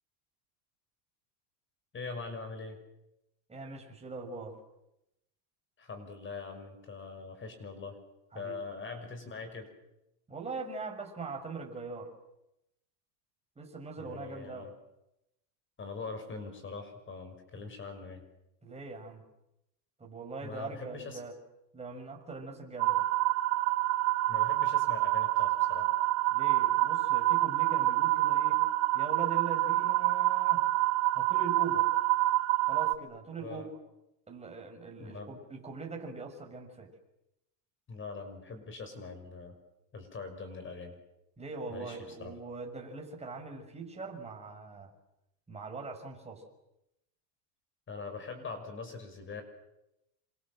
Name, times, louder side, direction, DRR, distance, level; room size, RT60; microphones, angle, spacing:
voice 1, 1.9-2.8 5.8-8.0 8.3-9.7 14.0-14.7 15.8-18.2 20.4-21.2 24.3-25.9 33.4-33.7 35.0-35.4 37.9-39.6 39.9-41.0 41.7-42.4 47.9-49.4, left 4 dB, 25° left, 7 dB, 6.2 m, -42 dB
voice 2, 3.5-4.6 8.3-8.6 10.3-12.1 13.6-14.7 18.6-19.2 20.0-21.3 21.7-23.1 26.3-28.6 28.9-30.7 31.1-31.9 32.6-33.6 34.3-36.9 41.4-44.9 45.5-46.4, right 4 dB, 15° right, 1 dB, 6.5 m, -41 dB
sound 1, 22.8-32.9, right 17 dB, 35° right, 1.1 m, -27 dB
28.0 x 26.0 x 7.8 m, 0.88 s
supercardioid pair, 130°, 49 cm